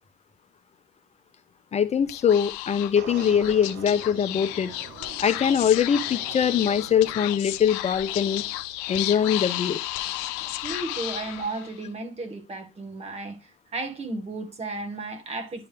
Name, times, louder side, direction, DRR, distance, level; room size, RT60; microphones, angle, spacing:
voice 1, 1.7-4.7 5.2-8.4 8.9-9.8, left 8 dB, 35° left, 0.5 m, -22 dB
Speech / Whispering, 2.0-11.8, left 15 dB, 90° left, 0.5 m, -33 dB
sound 1, 3.0-7.3, right 8 dB, 65° right, 1.0 m, -44 dB
voice 2, 10.6-15.7, right 2 dB, 35° right, 1.7 m, -34 dB
10.0 x 3.5 x 3.4 m
supercardioid pair, 80°, 19 cm